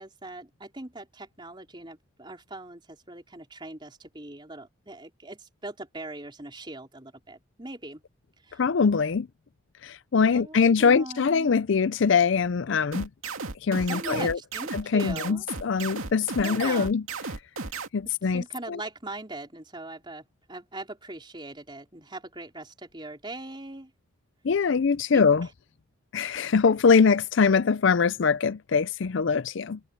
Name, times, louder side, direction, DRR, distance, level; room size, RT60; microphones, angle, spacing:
voice 1, 0.0-8.0 8.4-8.6 10.2-11.6 13.8-15.5 16.4-16.9 18.3-23.9 24.9-25.2, right 2 dB, 20° right, 4.2 m, -40 dB
voice 2, 8.6-9.3 9.8-13.1 13.6-14.4 14.7-17.0 17.9-18.8 24.4-25.5 26.1-29.8, left 5 dB, 60° left, 0.4 m, -23 dB
sound 1, 12.9-17.9, right 4 dB, 75° right, 2.4 m, -34 dB
head